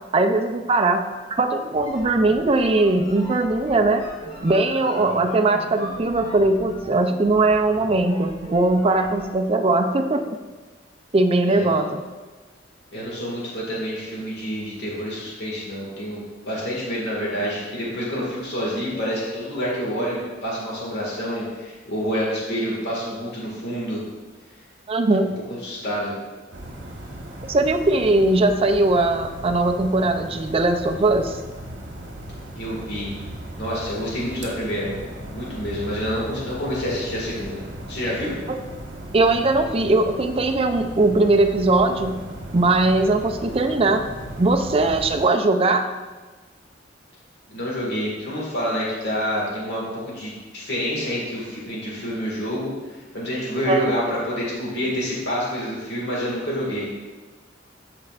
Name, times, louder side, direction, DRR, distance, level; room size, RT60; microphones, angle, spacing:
voice 1, 0.1-1.0 1.3-4.0 4.4-10.3 11.1-12.0 24.9-25.4 27.5-31.4 38.5-38.6 39.1-42.2 42.5-44.1 44.4-45.9 53.7-53.9, right 2 dB, 30° right, 6 dB, 0.4 m, -20 dB
sound 1, 1.6-9.4, equal, 30° left, 1.4 m, -38 dB
voice 2, 11.5-11.8 12.9-24.0 25.5-26.1 32.6-33.1 33.6-34.9 35.3-38.4 47.5-57.0, equal, 60° left, -5 dB, 1.9 m, -28 dB
sound 2, 26.5-45.3, right 1 dB, 70° right, 1.2 m, -37 dB
12.5 x 4.3 x 2.5 m, 1.3 s
head